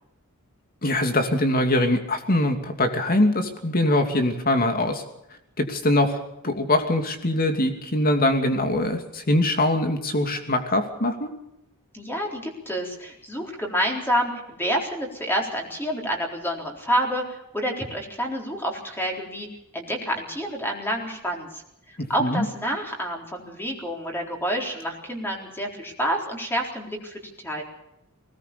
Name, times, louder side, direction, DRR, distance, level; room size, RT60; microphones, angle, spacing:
voice 1, 0.8-5.0 5.6-11.3 22.0-22.5, left 1 dB, 40° left, 6 dB, 2.7 m, -23 dB
voice 2, 11.9-17.3 17.5-19.5 19.7-21.6 21.9-27.6, equal, 10° left, 0 dB, 4.0 m, -28 dB
20.5 x 18.5 x 7.0 m, 0.83 s
head